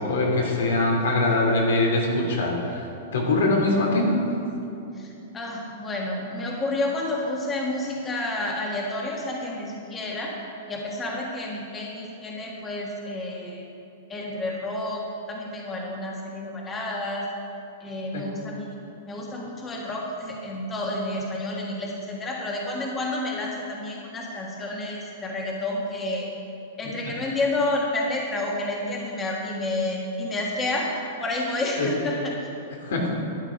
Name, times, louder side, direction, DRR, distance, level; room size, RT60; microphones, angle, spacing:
voice 1, 0.0-2.8 3.1-4.1 18.1-18.2 31.8-31.9 32.8-33.1, left 2 dB, 85° left, -1 dB, 2.9 m, -22 dB
voice 2, 4.9-10.3 10.7-13.7 14.1-17.3 17.8-26.3 26.8-30.9 31.2-32.5, left 2 dB, 15° left, -2 dB, 1.5 m, -30 dB
12.5 x 8.8 x 5.3 m, 2.8 s
supercardioid pair, 155°, 0 cm